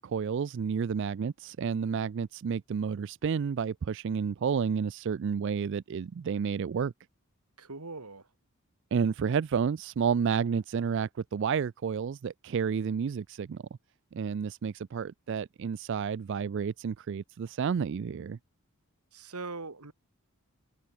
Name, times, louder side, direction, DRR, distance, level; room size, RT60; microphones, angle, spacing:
voice 1, 0.0-6.9 8.9-13.7 14.1-18.4, right 6 dB, 55° right, 0.3 m, -30 dB
voice 2, 7.6-8.3 19.1-19.9, right 3 dB, 90° right, 2.4 m, -41 dB
head